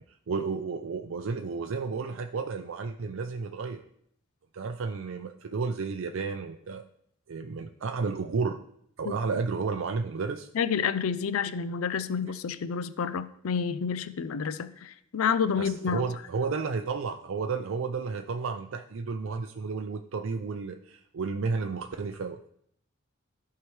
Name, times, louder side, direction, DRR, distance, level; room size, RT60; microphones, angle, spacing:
voice 1, 0.3-3.8 4.5-6.8 7.3-8.6 9.0-10.5 15.6-22.5, right 4 dB, 75° right, 6 dB, 0.4 m, -32 dB
voice 2, 10.5-16.0, left 6 dB, 90° left, 13 dB, 0.4 m, -29 dB
13.5 x 4.7 x 3.2 m, 0.70 s
head